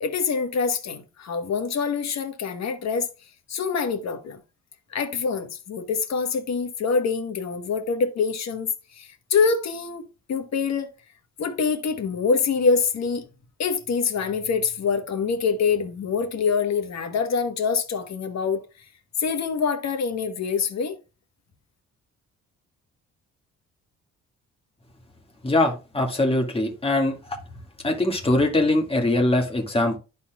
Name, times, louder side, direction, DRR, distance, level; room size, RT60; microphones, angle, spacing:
voice 1, 0.0-3.1 3.5-4.4 4.9-10.9 11.4-13.2 13.6-18.6 19.2-21.0, left 5 dB, 60° left, 1.3 m, -25 dB
voice 2, 25.4-27.4 27.8-30.0, left 2 dB, 20° left, 2.0 m, -22 dB
12.5 x 4.2 x 2.4 m
cardioid pair, 90°, 30 cm